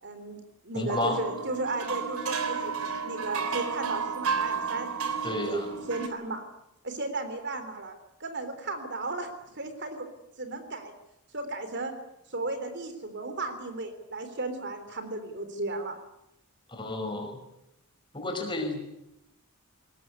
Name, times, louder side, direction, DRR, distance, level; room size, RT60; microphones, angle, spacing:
voice 1, 0.0-0.4 0.6-2.7 3.0-4.9 5.3-5.6 5.9-6.4 6.8-7.9 8.2-10.1 10.4-10.9 11.3-12.0 12.3-16.0, right 2 dB, 55° right, 9 dB, 3.5 m, -34 dB
voice 2, 0.7-1.2 5.2-5.7 16.7-17.4 18.1-18.8, left 2 dB, 20° left, 3 dB, 5.6 m, -31 dB
sound 1, 0.9-6.1, right 5 dB, 85° right, 3.4 m, -32 dB
21.5 x 19.0 x 9.6 m, 0.84 s
head